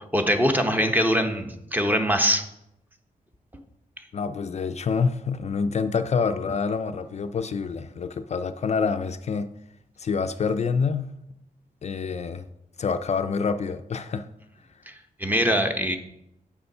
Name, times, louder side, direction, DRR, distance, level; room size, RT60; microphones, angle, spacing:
voice 1, 0.1-2.4 14.9-15.0 15.2-16.0, equal, 10° right, 0.8 m, -22 dB
voice 2, 4.1-9.5 10.0-11.1 11.8-12.4 12.8-14.3, left 5 dB, 45° left, 0.4 m, -27 dB
7.1 x 6.9 x 5.4 m
wide cardioid pair, 140°, 15 cm